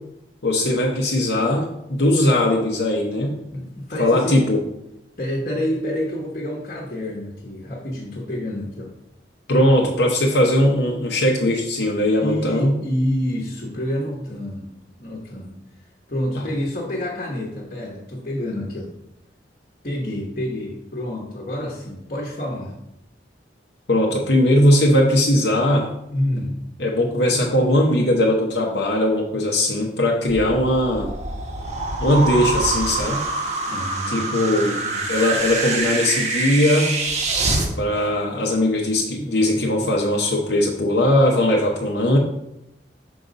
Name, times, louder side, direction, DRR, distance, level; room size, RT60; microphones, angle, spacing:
voice 1, 0.4-3.4 4.0-4.6 9.5-12.7 16.3-16.4 23.9-25.9 26.8-31.1 32.0-33.2 34.1-34.8 35.1-36.9 37.8-42.2, left 1 dB, 70° left, -1 dB, 0.9 m, -19 dB
voice 2, 3.5-4.4 5.2-8.9 12.2-14.7 15.0-15.6 16.1-18.9 19.8-22.7 26.1-26.6 33.7-35.2, left 1 dB, 45° left, -2 dB, 1.2 m, -28 dB
sound 1, 30.3-37.7, right 3 dB, 40° right, 0.9 m, -25 dB
5.8 x 4.0 x 5.1 m, 0.82 s
head